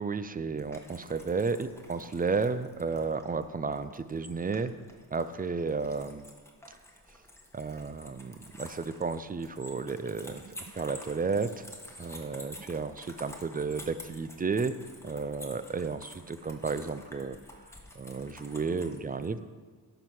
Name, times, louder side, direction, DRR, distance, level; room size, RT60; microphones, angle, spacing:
voice 1, 0.0-4.7 5.1-6.3 7.5-11.7 12.0-14.7 15.0-17.4 18.0-19.4, right 4 dB, 25° right, 12 dB, 0.4 m, -32 dB
sound 1, 0.6-19.3, left 1 dB, 5° left, 1.3 m, -50 dB
11.5 x 4.7 x 5.9 m, 1.5 s
cardioid pair, 90°, 39 cm